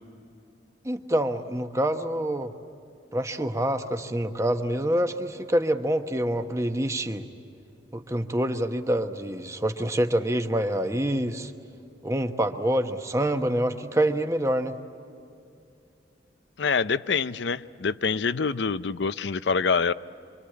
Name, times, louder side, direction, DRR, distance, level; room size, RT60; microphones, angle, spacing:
voice 1, 0.8-2.5 3.1-7.2 7.9-11.5 12.0-14.8, right 1 dB, 15° right, 7 dB, 1.1 m, -26 dB
voice 2, 16.6-19.9, left 5 dB, 75° left, 15 dB, 0.6 m, -25 dB
26.0 x 25.0 x 8.7 m, 2.6 s
head